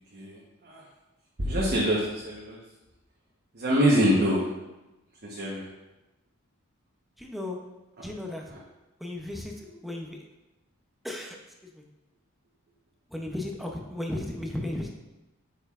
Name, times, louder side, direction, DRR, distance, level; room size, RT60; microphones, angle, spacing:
voice 1, 1.5-2.6 3.5-4.4 5.3-5.6, equal, 45° right, -6 dB, 1.1 m, -24 dB
voice 2, 7.2-7.6 8.0-8.4 9.0-10.2 11.0-11.4 11.7-11.8 13.1-14.9, left 1 dB, ahead, 0 dB, 0.6 m, -35 dB
8.3 x 5.5 x 2.4 m, 1.0 s
head